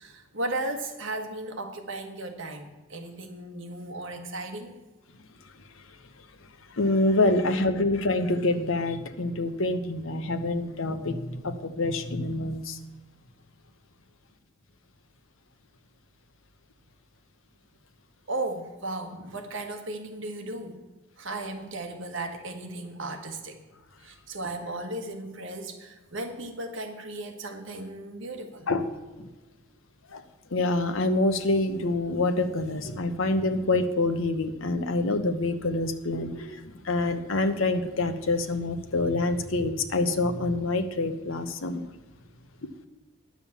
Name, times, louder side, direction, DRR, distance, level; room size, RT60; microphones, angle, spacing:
voice 1, 0.0-4.8 18.3-20.8 21.2-23.6 24.0-28.7, right 2 dB, 60° right, 1.4 m, -35 dB
voice 2, 6.7-12.8 28.7-28.8 29.2-29.3 30.1-30.2 30.5-41.9 42.6-42.7, left 2 dB, 65° left, 0.9 m, -26 dB
10.5 x 7.3 x 7.1 m
head